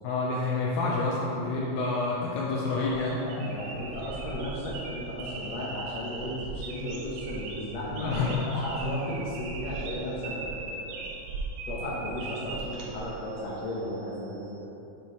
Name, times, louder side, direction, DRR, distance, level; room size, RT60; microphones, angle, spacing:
voice 1, 0.0-3.5 8.0-8.5, left 3 dB, 85° left, -5 dB, 2.5 m, -28 dB
sound 1, 2.7-13.6, right 3 dB, 85° right, 2.6 m, -39 dB
voice 2, 2.8-8.2 8.4-11.0 11.7-14.6, equal, 70° left, -6 dB, 1.7 m, -35 dB
9.2 x 4.7 x 3.0 m, 2.9 s
omnidirectional pair, 4.2 m